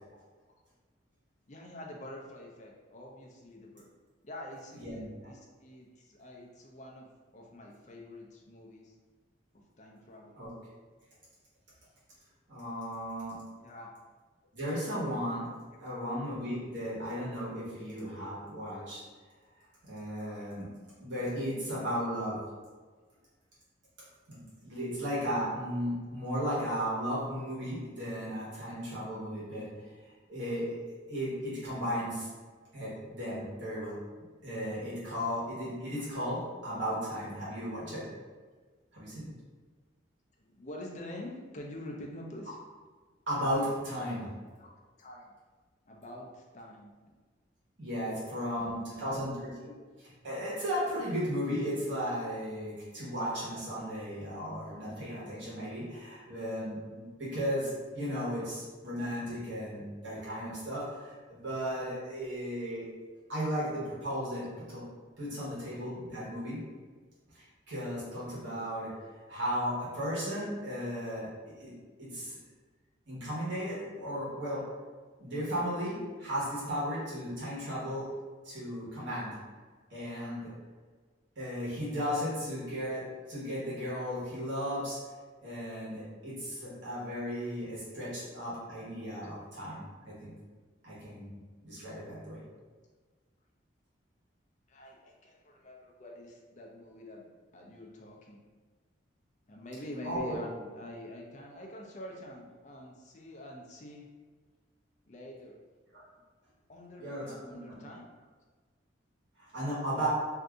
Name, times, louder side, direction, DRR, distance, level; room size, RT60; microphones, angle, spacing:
voice 1, 1.5-3.9 4.2-8.9 9.5-10.4 13.6-13.9 15.7-15.8 40.4-42.6 44.6-44.7 45.0-45.3 45.9-46.9 48.1-49.3 87.9-88.1 94.7-97.3 97.5-98.4 99.5-104.1 105.1-105.6 106.7-108.3, left 1 dB, 40° left, -1 dB, 0.5 m, -46 dB
voice 2, 4.7-5.1 10.4-10.5 12.5-13.4 14.5-15.5 15.8-19.0 19.8-20.7 21.0-22.4 24.3-29.7 30.0-32.3 32.7-34.0 34.4-38.1 38.9-39.3 43.3-44.3 47.8-49.7 50.0-62.9 63.3-64.9 65.2-66.7 67.3-71.7 72.0-72.4 73.1-74.7 75.2-78.1 78.4-79.4 79.9-80.5 81.4-85.0 85.4-90.3 90.8-92.4 100.0-100.4 105.9-106.0 107.0-107.8 109.4-110.1, equal, 70° right, -8 dB, 1.2 m, -35 dB
2.7 x 2.5 x 3.5 m, 1.4 s
head